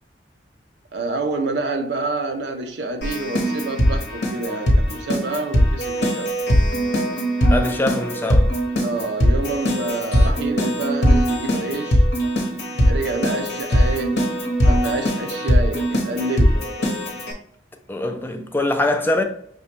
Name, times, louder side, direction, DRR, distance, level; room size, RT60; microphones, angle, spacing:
voice 1, 0.9-6.3 8.8-12.1 12.7-14.2 14.6-16.7, right 3 dB, 65° right, 0.6 m, -27 dB
Keyboard (musical), 3.0-17.3, equal, 70° left, 0.8 m, -20 dB
voice 2, 7.5-8.5 17.9-19.2, left 1 dB, 10° left, 0.4 m, -23 dB
5.9 x 2.2 x 2.9 m
head